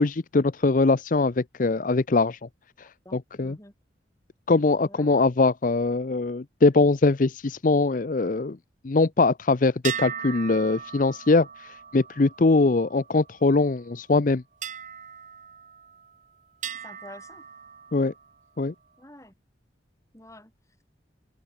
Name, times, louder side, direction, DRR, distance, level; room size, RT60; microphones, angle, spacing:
voice 1, 0.0-2.4 2.8-3.6 4.5-8.6 8.8-14.4 17.9-18.1 18.6-18.7, left 3 dB, 45° left, 0.6 m, -22 dB
voice 2, 3.0-3.7 4.9-5.2 16.8-17.4 19.0-19.3 20.1-20.5, left 1 dB, 15° left, 4.6 m, -47 dB
sound 1, 9.8-13.5 14.6-16.2 16.6-18.3, right 8 dB, 45° right, 1.3 m, -38 dB
head